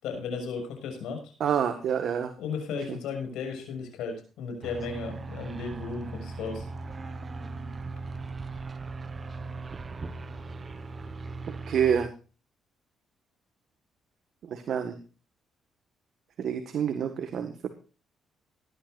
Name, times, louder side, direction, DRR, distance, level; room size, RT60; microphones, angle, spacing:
voice 1, 0.0-1.2 2.4-6.6, left 5 dB, 90° left, 5 dB, 6.7 m, -35 dB
voice 2, 1.4-2.3 2.9-3.0 11.7-12.1 14.4-15.0 16.4-17.7, right 8 dB, 65° right, 7 dB, 1.7 m, -27 dB
sound 1, 4.6-12.1, right 3 dB, 35° right, 1.3 m, -38 dB
19.0 x 12.5 x 2.6 m, 0.35 s
cardioid pair, 90°, 0 cm